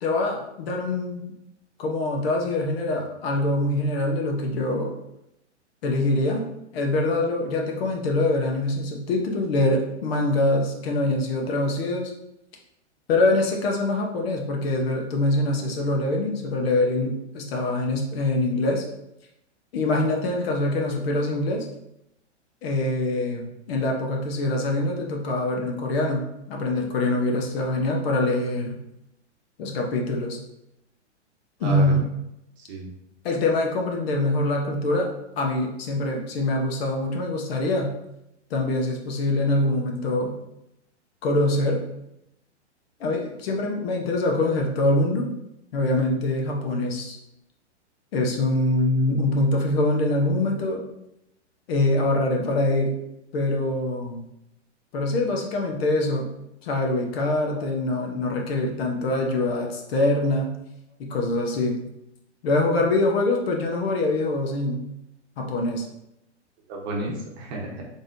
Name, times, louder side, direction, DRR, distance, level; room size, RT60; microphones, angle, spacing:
voice 1, 0.0-1.2 1.8-4.9 5.8-6.4 6.7-12.1 13.1-18.8 19.7-21.7 22.6-28.8 29.6-30.4 31.6-32.0 33.2-35.1 35.4-37.9 38.5-40.3 41.2-41.8 43.0-45.3 45.7-47.2 48.1-50.8 51.7-52.9 53.3-54.3 54.9-56.3 56.6-60.6 61.0-61.8 62.4-64.9 65.4-65.9, left 2 dB, 55° left, 1 dB, 1.0 m, -24 dB
voice 2, 31.6-32.0 32.6-32.9 57.6-57.7 66.7-67.9, right 2 dB, 40° right, 0 dB, 0.9 m, -32 dB
3.9 x 3.5 x 2.6 m, 0.83 s
hypercardioid pair, 135°, 36 cm